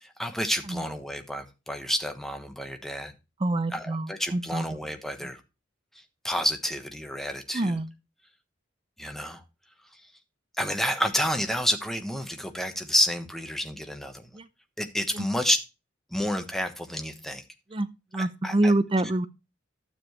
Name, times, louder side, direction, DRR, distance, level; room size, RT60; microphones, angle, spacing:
voice 1, 0.0-3.1 3.7-5.4 6.2-7.8 9.0-9.4 10.6-14.3 14.8-15.6 16.1-17.4 18.2-18.7, equal, ahead, 1.2 m, -29 dB
voice 2, 3.4-4.7 5.2-5.3 7.5-7.9 14.3-14.5 15.1-15.3 17.7-17.9 18.1-19.3, right 2 dB, 25° right, 0.5 m, -26 dB
12.5 x 7.0 x 3.2 m
head